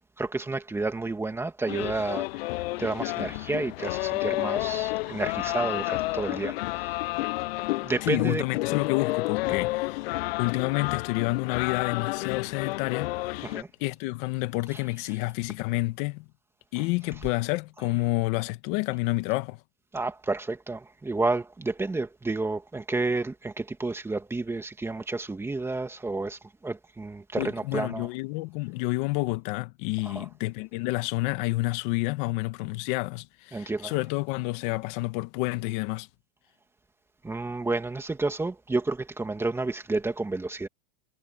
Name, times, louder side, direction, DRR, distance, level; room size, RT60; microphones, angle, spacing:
voice 1, 0.2-7.0 7.8-8.4 9.5-9.6 10.2-10.3 13.4-13.7 14.7-14.8 19.9-28.1 30.0-30.3 33.5-33.9 37.2-40.7, right 3 dB, 10° right, 2.5 m, -31 dB
sound 1, 1.7-13.6, left 20 dB, 65° left, 0.5 m, -30 dB
voice 2, 8.0-10.0 10.4-13.5 13.8-16.2 16.7-19.6 27.4-36.1, left 21 dB, 50° left, 1.5 m, -29 dB
supercardioid pair, 140°, 32 cm